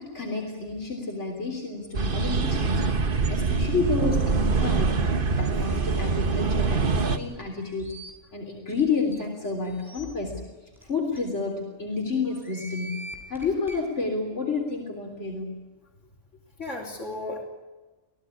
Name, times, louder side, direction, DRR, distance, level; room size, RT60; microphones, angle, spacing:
voice 1, 0.0-2.9 3.3-7.9 8.3-10.4 10.8-15.6, left 4 dB, 70° left, 0 dB, 3.8 m, -30 dB
sound 1, 1.9-7.2, right 4 dB, 45° right, 1.4 m, -24 dB
sound 2, 7.6-8.1 8.7-8.8 9.1-9.2 9.6-10.0 10.8-10.9 11.2-11.3 12.2-13.8, right 1 dB, ahead, 7.5 m, -43 dB
voice 2, 16.6-17.4, left 2 dB, 85° left, -4 dB, 4.0 m, -35 dB
26.5 x 17.5 x 9.9 m, 1.3 s
omnidirectional pair, 1.2 m